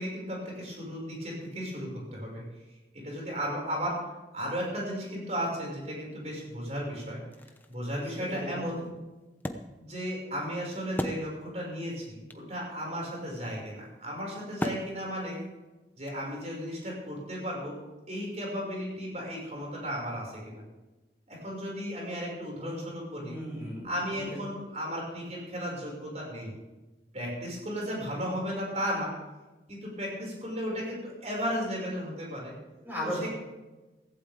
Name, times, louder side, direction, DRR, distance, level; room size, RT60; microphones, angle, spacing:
voice 1, 0.0-2.4 2.9-4.0 4.3-7.2 7.7-8.8 9.8-15.4 16.0-17.8 18.1-20.6 21.3-23.4 23.8-26.5 27.1-29.1 29.7-32.5 33.0-33.3, equal, 40° right, -2 dB, 6.1 m, -35 dB
Wood, 7.3-11.8 12.0-12.1 12.3-16.7, equal, 10° left, 0.8 m, -39 dB
voice 2, 8.2-8.9 23.2-23.9 24.1-24.4 32.8-33.3, equal, 10° right, -5 dB, 5.8 m, -36 dB
16.5 x 15.5 x 3.7 m, 1.1 s
head